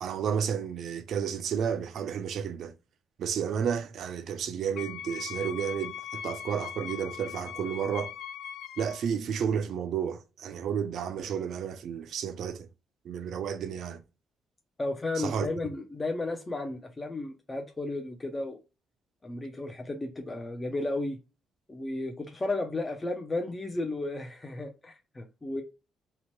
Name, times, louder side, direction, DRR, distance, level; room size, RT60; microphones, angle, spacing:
voice 1, 0.0-2.7 3.2-8.1 8.8-12.7 13.0-14.0 15.2-15.5, right 7 dB, 70° right, 0.4 m, -32 dB
Wind instrument woodwind instrument, 4.8-9.0, left 9 dB, 80° left, 0.3 m, -40 dB
voice 2, 14.8-18.6 19.2-21.2 21.7-25.6, left 2 dB, 20° left, 0.5 m, -33 dB
2.9 x 2.1 x 3.0 m
cardioid pair, 90°, 0 cm